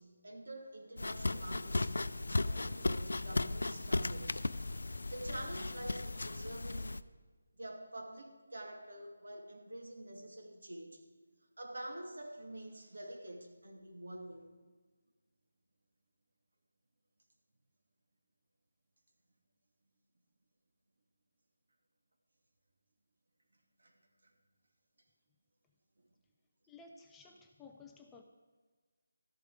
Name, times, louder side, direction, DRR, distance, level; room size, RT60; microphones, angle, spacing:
voice 1, 0.0-4.5 5.1-7.0 7.5-11.0 11.6-14.5 23.8-23.9 24.2-24.3, right 1 dB, 70° right, 2 dB, 2.7 m, -47 dB
sound 1, 1.0-7.0, left 2 dB, 85° left, 0.5 m, -36 dB
voice 2, 26.7-28.2, left 4 dB, 5° left, 1 dB, 0.4 m, -55 dB
13.5 x 11.5 x 5.1 m, 1.4 s
figure-of-eight pair, 180°, 0 cm